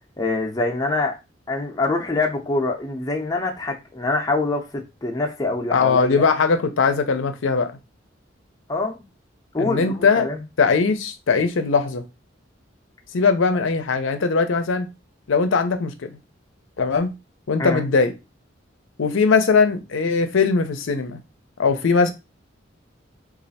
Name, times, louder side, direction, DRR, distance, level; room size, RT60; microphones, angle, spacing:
voice 1, 0.2-1.2 1.5-4.7 5.0-6.2 8.7-9.0 9.5-10.4 17.6-17.8, left 3 dB, 20° left, 0.5 m, -24 dB
voice 2, 5.7-7.7 9.6-10.3 10.6-12.0 13.1-14.9 15.3-16.2 16.8-17.1 17.5-18.1 19.0-21.2 21.6-22.1, left 4 dB, 80° left, 0.5 m, -20 dB
3.2 x 2.4 x 4.0 m
head